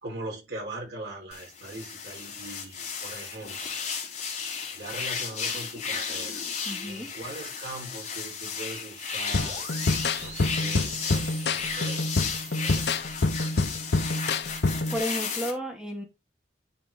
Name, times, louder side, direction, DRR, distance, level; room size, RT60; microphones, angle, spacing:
voice 1, 0.0-3.8 4.7-6.5 6.8-9.7 10.2-12.2 12.6-13.0, right 2 dB, 80° right, 4.7 m, -41 dB
sound 1, 1.3-15.5, left 6 dB, 40° left, 3.0 m, -34 dB
voice 2, 6.7-7.1 14.9-16.0, equal, 5° right, 2.2 m, -32 dB
sound 2, 9.3-15.0, left 3 dB, 70° left, 0.7 m, -27 dB
sound 3, 9.4-13.0, right 3 dB, 40° right, 2.9 m, -44 dB
9.7 x 5.0 x 3.8 m
head